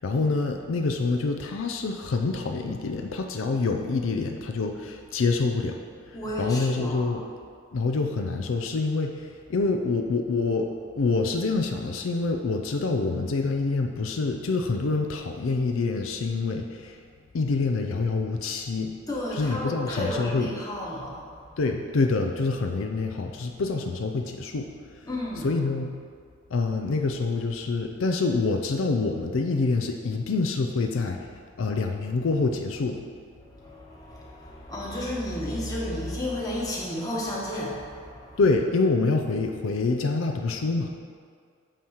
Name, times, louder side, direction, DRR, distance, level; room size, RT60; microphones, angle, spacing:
voice 1, 0.0-7.2 7.7-17.0 17.3-19.0 19.4-20.5 21.6-25.1 25.4-25.9 26.5-33.0 38.4-40.9, left 3 dB, 75° left, 4 dB, 0.5 m, -26 dB
voice 2, 6.1-7.1 19.1-21.4 25.0-25.6 33.4-38.6, left 1 dB, 20° left, -5 dB, 1.2 m, -32 dB
8.9 x 3.0 x 6.4 m, 2.1 s
head